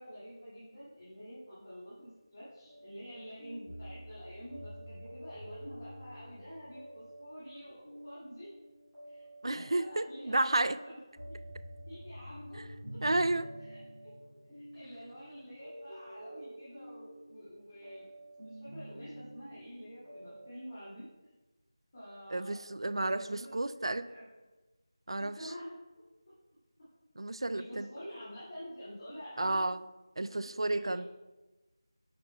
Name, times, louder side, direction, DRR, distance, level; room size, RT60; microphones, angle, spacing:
voice 1, 0.0-8.5 9.0-9.3 9.5-11.0 11.3-11.4 11.9-13.0 13.6-14.1 14.5-18.1 18.4-21.0 21.9-23.5 24.0-24.3 25.2-25.7 27.5-29.6 30.2-30.3 30.5-31.1, equal, 30° left, -12 dB, 2.1 m, -48 dB
sound 1, 2.7-20.6, equal, 5° right, 2.1 m, -49 dB
voice 2, 9.4-10.8 13.0-13.5 22.3-24.1 25.1-25.4 27.2-27.9 29.4-29.8 30.2-31.1, right 2 dB, 75° right, 14 dB, 0.3 m, -31 dB
9.3 x 6.8 x 2.2 m, 1.1 s
figure-of-eight pair, 175°, 3 cm